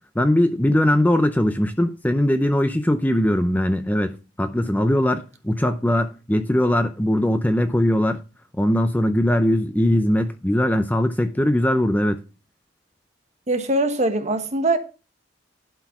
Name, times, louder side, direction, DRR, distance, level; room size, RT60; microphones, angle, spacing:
voice 1, 0.2-8.2 8.6-12.2, left 1 dB, 10° left, 0.5 m, -20 dB
voice 2, 13.5-14.8, right 2 dB, 35° right, 1.3 m, -22 dB
11.5 x 4.6 x 5.9 m
head